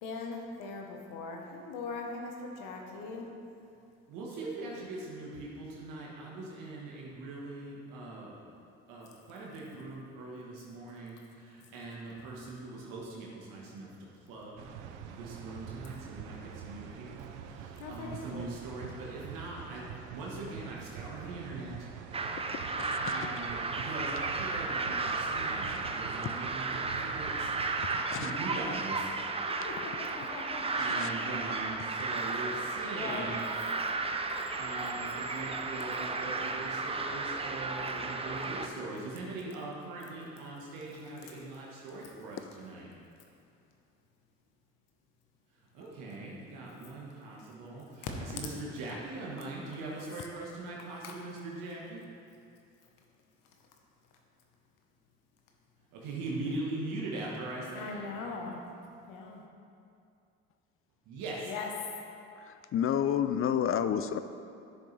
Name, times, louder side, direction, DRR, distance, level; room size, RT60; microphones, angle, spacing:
voice 1, 0.0-3.3 17.8-18.5 29.5-31.5 32.9-33.4 51.0-51.2 57.7-58.6 59.1-59.4 61.4-61.7, left 4 dB, 75° left, 1 dB, 1.2 m, -41 dB
voice 2, 4.1-8.4 8.9-14.7 15.1-21.9 23.0-27.5 28.1-29.1 30.8-33.4 34.5-42.9 45.7-52.0 55.9-58.1 61.1-61.5, right 2 dB, 75° right, -4 dB, 1.5 m, -41 dB
sound 1, 14.6-28.1, right 8 dB, 90° right, 0.5 m, -46 dB
sound 2, 22.1-38.7, right 3 dB, 20° right, 0.5 m, -34 dB
voice 3, 22.7-23.3 26.2-26.3 27.9-28.3 30.2-30.3 30.7-31.1 62.4-64.2, left 9 dB, 40° left, 11 dB, 0.5 m, -31 dB
9.7 x 6.7 x 3.3 m, 2.5 s
supercardioid pair, 75°, 33 cm